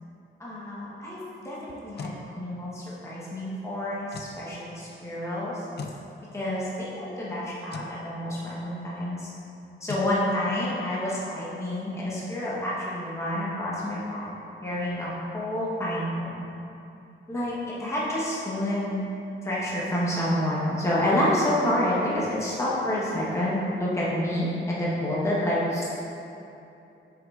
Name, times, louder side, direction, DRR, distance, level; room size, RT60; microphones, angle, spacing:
voice 1, 0.4-5.6 6.3-9.3 9.8-14.3 14.6-16.4 17.3-19.0 19.4-25.9, left 1 dB, 15° left, -7 dB, 1.1 m, -28 dB
sound 1, 1.7-2.2 4.1-4.4 5.8-6.0 7.7-8.0 9.9-10.1, left 4 dB, 50° left, 0.5 m, -37 dB
8.4 x 6.5 x 2.4 m, 2.8 s
wide cardioid pair, 170°, 21 cm